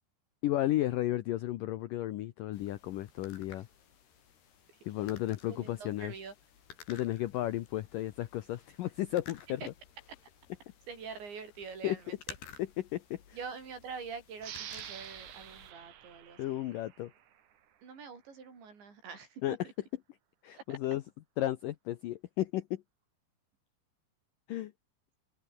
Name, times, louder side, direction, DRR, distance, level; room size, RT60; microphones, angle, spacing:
voice 1, 0.4-3.7 4.9-6.1 6.9-9.7 11.8-12.0 12.6-13.4 16.4-17.1 19.4-19.7 20.4-21.0 21.4-22.8 24.5-24.7, left 14 dB, 90° left, 1.9 m, -33 dB
sound 1, 2.5-15.7, left 7 dB, 65° left, 5.6 m, -55 dB
voice 2, 5.5-6.3 6.9-7.0 9.6-9.7 10.9-12.2 13.3-16.6 17.8-19.4 20.7-20.8, right 5 dB, 80° right, 8.3 m, -45 dB
sound 2, 14.4-17.6, right 10 dB, 55° right, 2.7 m, -47 dB
open air
omnidirectional pair, 5.1 m